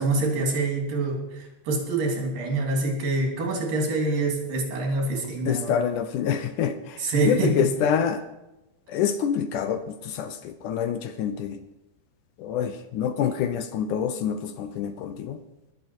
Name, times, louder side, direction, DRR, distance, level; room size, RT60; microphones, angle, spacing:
voice 1, 0.0-5.7 7.0-7.5, right 2 dB, 75° right, 0 dB, 4.8 m, -26 dB
voice 2, 5.5-8.2 8.9-11.6 12.4-15.4, left 8 dB, 75° left, 10 dB, 2.0 m, -26 dB
21.5 x 7.7 x 4.6 m, 0.96 s
omnidirectional pair, 4.1 m